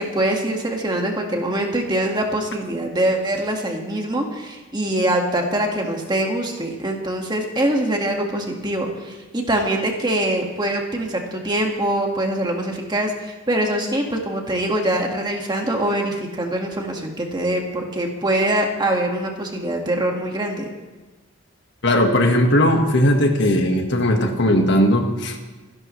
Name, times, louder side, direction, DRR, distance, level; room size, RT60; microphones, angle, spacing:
voice 1, 0.0-20.7, right 1 dB, 20° right, 1 dB, 1.8 m, -23 dB
voice 2, 21.8-25.4, left 1 dB, 60° left, 4 dB, 1.7 m, -18 dB
27.0 x 11.5 x 3.2 m, 1.2 s
head